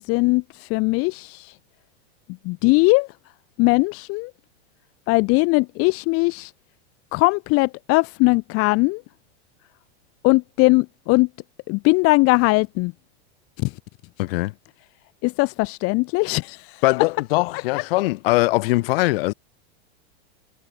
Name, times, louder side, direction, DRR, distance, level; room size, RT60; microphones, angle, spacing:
voice 1, 0.0-1.6 2.4-3.1 3.6-4.3 5.1-6.5 7.1-9.0 10.2-11.3 11.7-12.9 13.6-13.7 15.2-16.8, left 26 dB, 45° left, 2.1 m, -20 dB
voice 2, 14.2-14.5 16.8-19.3, left 21 dB, 60° left, 7.3 m, -21 dB
supercardioid pair, 140°, 32 cm